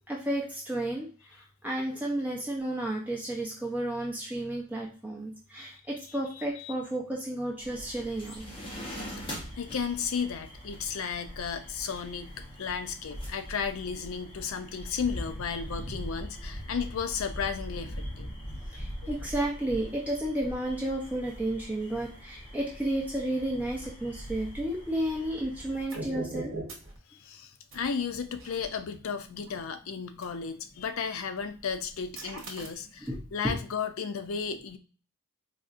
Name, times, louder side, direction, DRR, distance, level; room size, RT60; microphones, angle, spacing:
voice 1, 0.1-8.4 18.7-26.5 33.1-33.2 33.4-33.5, right 1 dB, 5° right, -3 dB, 0.6 m, -32 dB
voice 2, 6.4-6.7 9.1-9.3 9.6-18.3 19.0-19.1 27.1-34.8, left 6 dB, 70° left, 9 dB, 0.4 m, -34 dB
sound 1, 7.6-25.9, equal, 25° left, 0.8 m, -42 dB
sound 2, 25.9-27.0 27.7-29.6 30.2-30.3 30.8-31.0 31.4-33.2, right 2 dB, 65° right, 0.9 m, -41 dB
4.0 x 2.4 x 2.5 m, 0.39 s
head